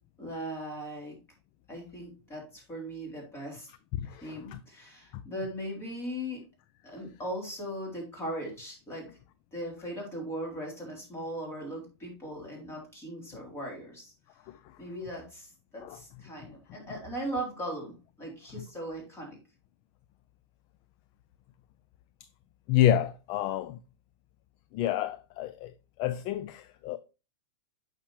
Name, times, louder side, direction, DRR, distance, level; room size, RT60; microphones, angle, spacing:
voice 1, 0.2-1.2 1.7-3.7 4.1-6.5 6.8-9.2 9.5-14.1 14.8-19.4, right 1 dB, 15° left, 3.7 m, -39 dB
voice 2, 3.9-4.6 5.1-5.2 14.5-14.8 15.8-16.0 18.6-18.7 22.7-23.8 24.7-27.0, left 11 dB, 35° left, 0.4 m, -29 dB
8.6 x 5.8 x 3.1 m
hypercardioid pair, 130°, 14 cm